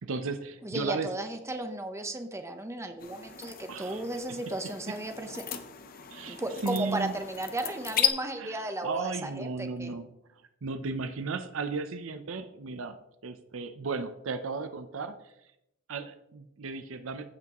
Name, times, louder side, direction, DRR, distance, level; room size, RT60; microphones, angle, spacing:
voice 1, 0.0-1.1 3.7-4.0 4.9-5.0 6.1-7.1 8.4-10.1 10.6-13.0 13.2-15.2 15.9-17.2, right 4 dB, 70° right, 10 dB, 0.6 m, -35 dB
voice 2, 0.6-5.4 6.3-9.9, right 1 dB, 15° right, 6 dB, 0.8 m, -35 dB
sound 1, 3.0-8.1, left 9 dB, 45° left, 0.7 m, -35 dB
15.0 x 5.9 x 3.0 m, 0.84 s
head